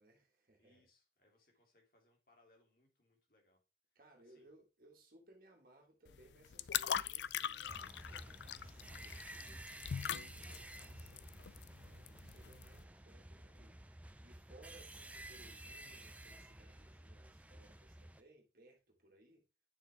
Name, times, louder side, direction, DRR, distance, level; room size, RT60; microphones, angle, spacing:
voice 1, 0.0-0.9 1.5-1.6 4.0-19.4, right 1 dB, 50° right, 2.0 m, -65 dB
voice 2, 0.6-3.6 4.2-4.5 11.9-12.3 18.0-18.1, left 2 dB, 55° left, 3.0 m, -73 dB
sound 1, 6.1-12.8, left 9 dB, 85° left, 0.4 m, -42 dB
sound 2, 7.7-18.2, right 1 dB, 10° right, 0.5 m, -53 dB
10.0 x 6.8 x 3.5 m
head